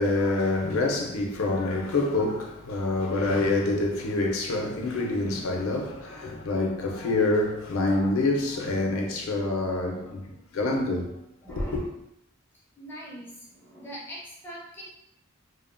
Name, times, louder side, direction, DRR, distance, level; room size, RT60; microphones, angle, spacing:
voice 1, 0.0-11.1 11.6-11.8, left 2 dB, 80° left, 0.5 m, -26 dB
voice 2, 11.4-11.9 12.8-14.9, equal, 10° left, 0.4 m, -42 dB
2.8 x 2.0 x 2.4 m
head